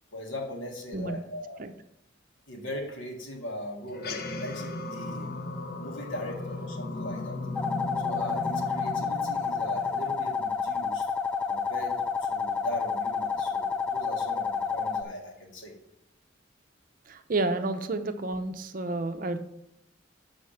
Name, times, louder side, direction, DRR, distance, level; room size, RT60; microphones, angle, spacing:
voice 1, 0.1-1.6 2.5-5.3 5.8-7.4 8.0-11.1 11.5-15.7, left 1 dB, 80° left, 1 dB, 1.8 m, -39 dB
sound 1, 3.9-10.6, left 2 dB, 50° left, 0.8 m, -36 dB
sound 2, 7.5-15.0, left 5 dB, 5° left, 0.3 m, -30 dB
voice 2, 17.1-19.4, right 2 dB, 45° right, 8 dB, 0.6 m, -30 dB
6.8 x 4.9 x 6.4 m, 0.81 s
head